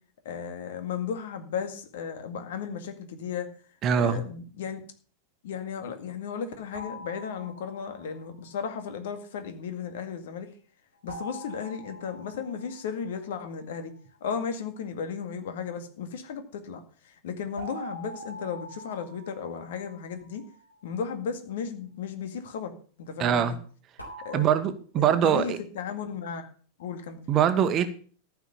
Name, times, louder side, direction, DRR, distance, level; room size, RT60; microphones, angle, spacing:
voice 1, 0.3-3.5 3.9-4.8 5.4-10.5 11.0-13.9 14.2-20.4 20.8-23.6 24.2-24.5 25.0-26.5 26.8-27.2, left 6 dB, 55° left, 8 dB, 2.0 m, -35 dB
voice 2, 3.8-4.2 23.2-23.5 24.3-25.6 27.3-27.9, right 8 dB, 30° right, 10 dB, 1.3 m, -23 dB
sound 1, 6.7-8.2 11.1-13.5 17.6-20.7 24.0-24.5, equal, 85° left, 3.8 m, -44 dB
14.0 x 6.0 x 7.0 m, 0.42 s
figure-of-eight pair, 90°, 0 cm